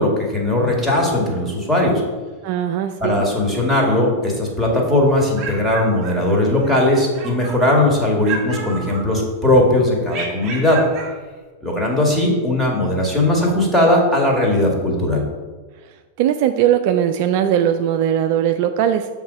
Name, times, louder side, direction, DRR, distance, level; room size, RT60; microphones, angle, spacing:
voice 1, 0.0-2.0 3.0-10.8 11.6-15.2, left 1 dB, 5° left, -2 dB, 1.7 m, -18 dB
voice 2, 2.4-3.2 16.2-19.1, right 10 dB, 45° right, 8 dB, 0.3 m, -19 dB
sound 1, 5.1-6.8 7.1-7.9 8.2-9.5 10.1-11.2, right 4 dB, 30° right, 1.5 m, -32 dB
7.0 x 3.7 x 5.1 m, 1.4 s
figure-of-eight pair, 90°, 0 cm